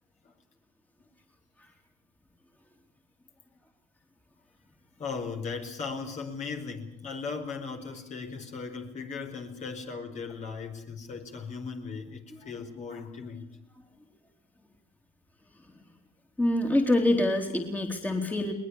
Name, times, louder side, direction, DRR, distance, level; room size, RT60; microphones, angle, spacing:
voice 1, 5.0-13.5, left 5 dB, 45° left, 4 dB, 4.7 m, -37 dB
voice 2, 16.4-18.5, left 1 dB, 10° left, 3 dB, 3.4 m, -25 dB
21.5 x 20.0 x 8.6 m, 0.79 s
supercardioid pair, 95°, 18 cm